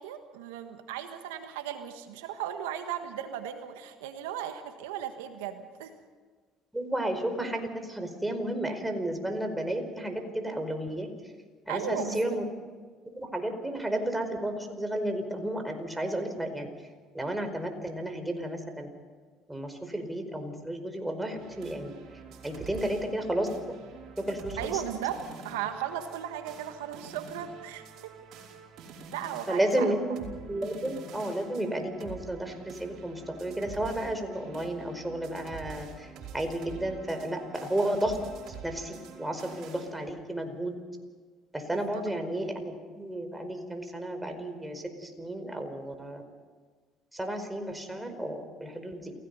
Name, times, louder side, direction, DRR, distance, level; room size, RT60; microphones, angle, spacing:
voice 1, 0.0-5.9 11.7-12.4 24.6-28.1 29.1-29.9 41.7-42.0, right 10 dB, 90° right, 7 dB, 1.5 m, -36 dB
voice 2, 6.7-11.1 11.7-12.4 13.1-16.7 17.1-18.9 19.5-21.9 22.4-23.5 24.2-24.8 29.5-30.2 30.5-36.1 36.3-38.2 38.6-40.7 41.5-46.2 47.1-49.1, right 1 dB, 10° right, 6 dB, 4.8 m, -32 dB
sound 1, 21.4-39.9, right 6 dB, 65° right, 5.0 m, -47 dB
28.5 x 17.0 x 5.5 m, 1.5 s
supercardioid pair, 70°, 0 cm